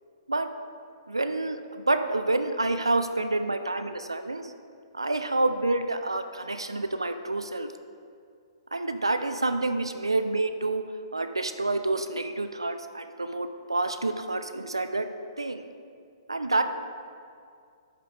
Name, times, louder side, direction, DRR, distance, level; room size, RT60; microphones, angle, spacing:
voice 1, 1.1-4.4 4.9-7.7 8.7-10.8 11.1-15.1 15.4-15.7 16.3-16.6, right 2 dB, 85° right, 9 dB, 0.5 m, -28 dB
11.5 x 5.0 x 3.3 m, 2.3 s
figure-of-eight pair, 120°, 2 cm